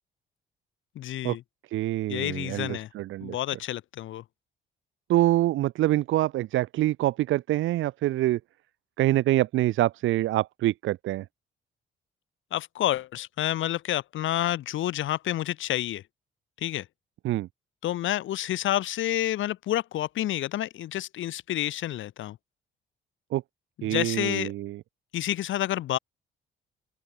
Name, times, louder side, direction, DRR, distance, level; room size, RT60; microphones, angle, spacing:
voice 1, 1.0-1.4 2.1-2.9 3.2-4.2 12.5-16.0 16.6-16.9 17.8-22.4 23.8-24.5 25.1-26.0, left 13 dB, 75° left, 1.9 m, -29 dB
voice 2, 1.7-3.4 5.1-8.4 9.0-11.3 17.2-17.5 23.3-23.4 23.8-24.8, right 15 dB, 80° right, 0.7 m, -25 dB
open air
cardioid pair, 90°, 20 cm